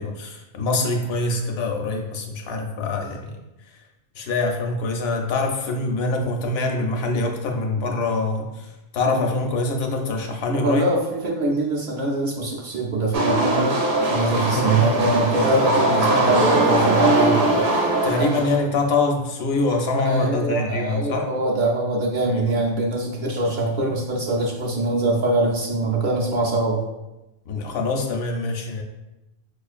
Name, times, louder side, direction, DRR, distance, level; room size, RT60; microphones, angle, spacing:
voice 1, 0.0-3.3 4.2-8.7 8.9-10.9 14.5-14.8 18.0-21.3 22.2-22.3 27.5-28.8, left 3 dB, 75° left, 2 dB, 0.8 m, -24 dB
voice 2, 10.6-13.8 14.1-17.8 20.0-26.8, right 2 dB, 55° right, -3 dB, 0.7 m, -23 dB
sound 1, 13.1-18.6, right 2 dB, 80° right, 0.9 m, -20 dB
5.0 x 2.4 x 2.4 m, 0.97 s
omnidirectional pair, 1.1 m